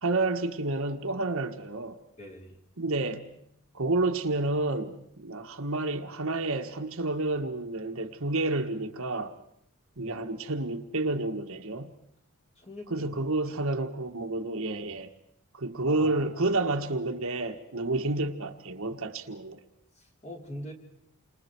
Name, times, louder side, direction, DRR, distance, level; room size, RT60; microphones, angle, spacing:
voice 1, 0.0-2.0 2.8-3.3 3.7-9.3 10.0-11.9 12.9-15.1 15.5-19.6, right 2 dB, 65° right, 1.6 m, -30 dB
voice 2, 2.2-2.6 12.6-13.2 15.8-16.4 19.9-20.7, left 1 dB, 30° left, 3.5 m, -43 dB
29.0 x 26.0 x 4.7 m
head